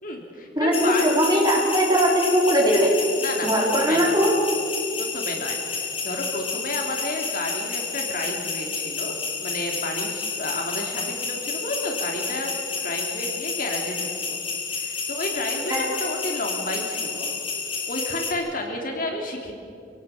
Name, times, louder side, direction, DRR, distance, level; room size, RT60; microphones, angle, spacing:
voice 1, 0.0-1.2 3.2-4.2 5.0-9.2 9.4-14.4 14.7-17.3 17.9-19.5, left 2 dB, 50° left, 2 dB, 3.3 m, -31 dB
voice 2, 0.6-2.9 3.4-4.3 15.7-15.8, equal, 25° right, -2 dB, 4.4 m, -20 dB
sound 1, 0.7-18.3, left 5 dB, 30° left, 2.9 m, -30 dB
26.5 x 17.5 x 7.4 m, 2.6 s
head